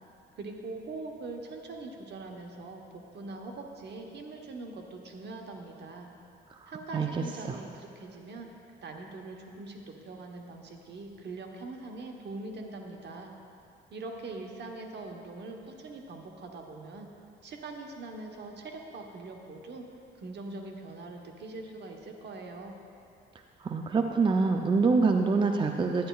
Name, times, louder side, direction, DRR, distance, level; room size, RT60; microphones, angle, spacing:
voice 1, 0.4-6.1 6.7-8.5 8.8-13.3 13.9-17.1 17.4-19.8 20.1-22.7, right 3 dB, 60° right, 2 dB, 1.0 m, -42 dB
voice 2, 23.6-26.1, right 4 dB, 25° right, 4 dB, 0.4 m, -25 dB
11.5 x 10.0 x 2.3 m, 2.6 s
cardioid pair, 90°, 20 cm